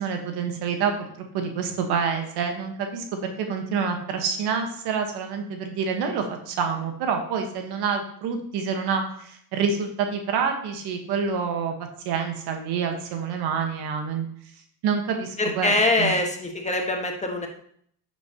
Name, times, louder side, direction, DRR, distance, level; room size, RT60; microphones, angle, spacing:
voice 1, 0.0-11.7 12.0-14.3 14.8-15.7 16.0-16.1, right 6 dB, 85° right, 5 dB, 1.4 m, -27 dB
voice 2, 15.4-17.5, left 2 dB, 20° left, 2 dB, 1.5 m, -23 dB
9.1 x 6.9 x 2.9 m, 0.63 s
cardioid pair, 90°, 38 cm